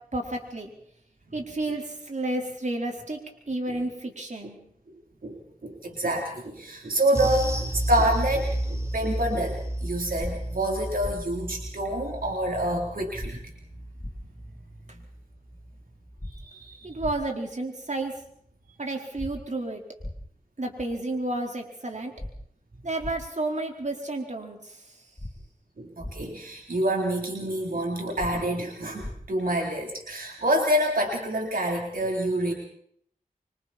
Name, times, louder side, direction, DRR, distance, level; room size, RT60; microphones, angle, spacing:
voice 1, 0.1-0.7 1.3-3.2 3.5-4.6 16.8-18.1 18.8-19.8 20.6-22.1 22.8-25.0, right 2 dB, 55° right, 2 dB, 4.4 m, -31 dB
voice 2, 5.2-13.5 16.3-17.0 25.8-32.5, right 1 dB, 75° right, 0 dB, 3.7 m, -27 dB
sound 1, 7.1-15.8 16.1-16.3 16.7-16.8, right 1 dB, 20° right, 4.1 m, -32 dB
sound 2, 10.2-10.3 11.0-11.1 13.2-13.3 14.0-14.1 16.2-16.3 17.0-17.1 19.2-19.3 20.0-20.1 22.2-22.3 23.0-23.1 25.2-25.3 26.0-26.1 28.2-28.3 29.0-29.1, left 1 dB, 25° left, 2.6 m, -35 dB
26.0 x 25.5 x 4.4 m, 0.68 s
wide cardioid pair, 50°, 15 cm